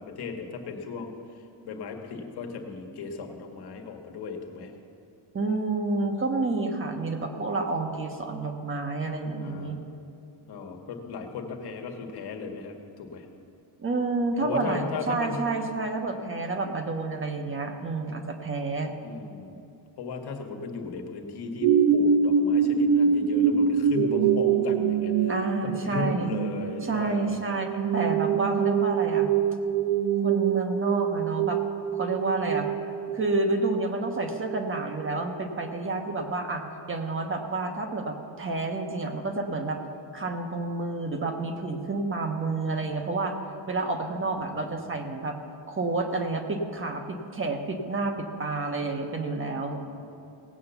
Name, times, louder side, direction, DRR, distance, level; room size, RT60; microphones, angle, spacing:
voice 1, 0.0-4.7 9.4-9.8 10.5-13.3 14.4-15.5 19.0-19.6 20.0-25.3 25.6-27.4 44.2-44.7 50.0-50.1, left 4 dB, 60° left, 3 dB, 1.7 m, -36 dB
voice 2, 5.3-9.8 13.8-18.9 25.3-26.3 26.8-29.3 30.2-31.6 31.9-32.7 33.1-39.8 40.1-43.4 43.7-45.4 45.7-49.8, right 3 dB, 25° right, 4 dB, 1.2 m, -29 dB
sound 1, 21.6-35.2 35.7-35.8, right 6 dB, 55° right, 0.9 m, -25 dB
17.5 x 8.5 x 7.0 m, 2.6 s
cardioid pair, 135°, 45 cm